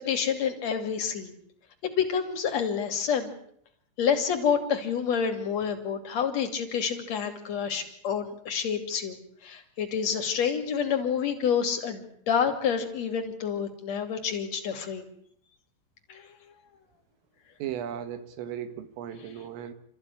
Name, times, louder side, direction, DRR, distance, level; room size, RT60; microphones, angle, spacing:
voice 1, 0.1-1.3 1.8-3.3 4.0-9.2 9.4-15.0 16.1-16.3, left 7 dB, 40° left, 5 dB, 3.1 m, -28 dB
voice 2, 17.6-19.7, right 10 dB, 85° right, 10 dB, 4.2 m, -36 dB
27.5 x 14.5 x 10.0 m, 0.67 s
omnidirectional pair, 5.7 m